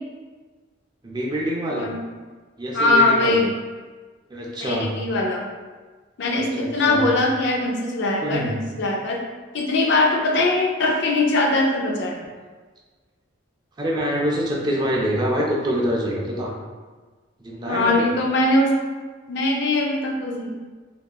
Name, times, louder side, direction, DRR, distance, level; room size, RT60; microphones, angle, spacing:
voice 1, 1.0-1.9 2.6-3.4 4.3-4.9 6.3-7.1 8.2-8.5 13.8-16.5 17.4-18.1, equal, 20° right, -3 dB, 0.3 m, -25 dB
voice 2, 2.7-3.5 4.6-5.5 6.2-9.2 9.5-12.2 17.7-18.7 19.3-20.5, left 2 dB, 55° left, 0 dB, 0.4 m, -21 dB
2.7 x 2.3 x 2.3 m, 1.4 s
head